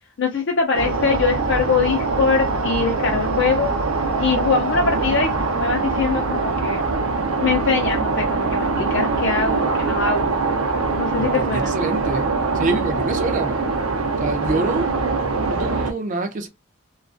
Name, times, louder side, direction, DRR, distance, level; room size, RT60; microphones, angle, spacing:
voice 1, 0.2-3.7 4.2-6.8 7.4-10.3 11.0-11.7, left 5 dB, 55° left, 0.4 m, -22 dB
sound 1, 0.7-15.9, right 3 dB, 85° right, 0.6 m, -23 dB
voice 2, 11.2-12.3 12.5-13.6 14.2-15.0 15.5-16.5, right 3 dB, 35° right, 0.4 m, -26 dB
2.3 x 2.3 x 2.4 m
head